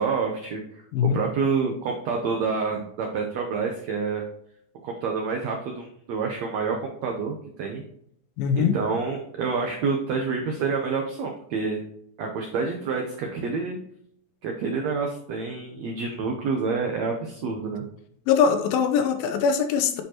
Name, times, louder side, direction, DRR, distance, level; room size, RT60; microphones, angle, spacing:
voice 1, 0.0-4.2 4.8-7.8 8.6-11.8 12.2-13.8 14.4-17.8, right 5 dB, 85° right, 2 dB, 1.5 m, -28 dB
voice 2, 8.4-8.7 18.3-20.0, left 7 dB, 80° left, 6 dB, 2.6 m, -22 dB
9.6 x 4.6 x 3.0 m, 0.71 s
omnidirectional pair, 4.1 m